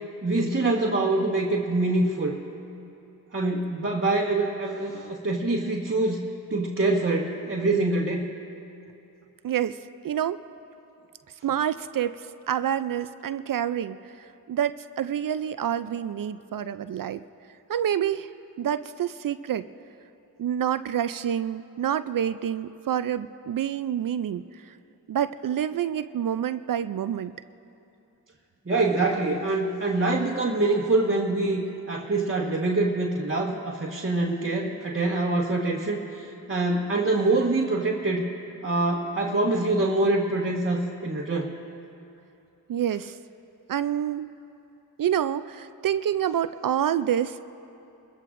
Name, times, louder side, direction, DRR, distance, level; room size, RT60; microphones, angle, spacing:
voice 1, 0.2-2.4 3.3-6.2 6.5-8.2 28.6-38.2 38.6-41.5, right 2 dB, 30° right, -3 dB, 1.5 m, -25 dB
voice 2, 9.4-10.4 11.4-17.2 17.7-18.3 18.6-19.7 20.4-24.8 25.1-27.3 42.7-43.2 43.7-44.3 45.0-47.5, right 10 dB, 55° right, 13 dB, 0.5 m, -28 dB
23.5 x 14.0 x 2.6 m, 2.8 s
cardioid pair, 45°, 39 cm